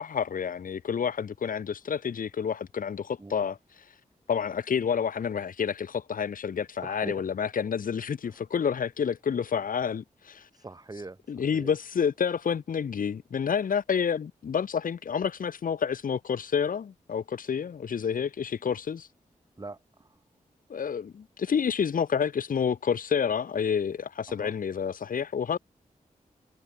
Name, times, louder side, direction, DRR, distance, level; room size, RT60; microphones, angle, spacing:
voice 1, 0.0-3.9 4.3-10.5 11.3-19.1 20.7-25.6, left 7 dB, 75° left, 1.0 m, -29 dB
voice 2, 3.2-3.5 6.8-7.2 8.2-8.4 10.5-11.8 19.6-20.2 24.3-24.6, right 2 dB, 25° right, 2.4 m, -43 dB
wide cardioid pair, 115°, 14 cm